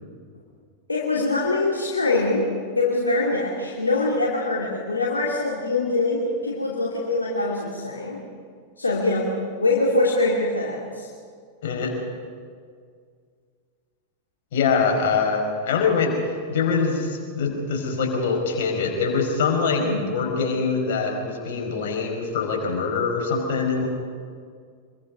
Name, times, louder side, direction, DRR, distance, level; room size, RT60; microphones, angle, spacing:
voice 1, 0.9-2.4 2.8-8.2 8.8-9.3 9.6-11.1 19.8-20.0, left 2 dB, 80° left, -3 dB, 2.8 m, -23 dB
voice 2, 11.6-11.9 14.5-16.1 16.5-23.9, left 5 dB, 55° left, 1 dB, 5.5 m, -24 dB
26.0 x 22.5 x 5.4 m, 2.1 s
figure-of-eight pair, 90°, 0 cm